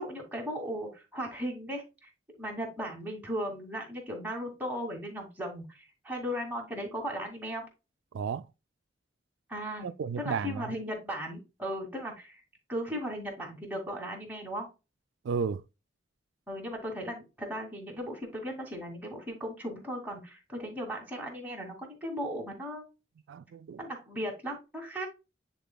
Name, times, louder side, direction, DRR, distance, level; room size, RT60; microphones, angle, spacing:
voice 1, 0.0-1.8 2.4-7.6 9.5-12.4 12.7-14.7 16.5-22.9 23.8-25.1, equal, 10° right, 2.3 m, -37 dB
voice 2, 8.1-8.5 9.8-10.8 15.2-15.6 23.3-23.8, right 6 dB, 90° right, 0.3 m, -33 dB
10.0 x 4.1 x 2.3 m
head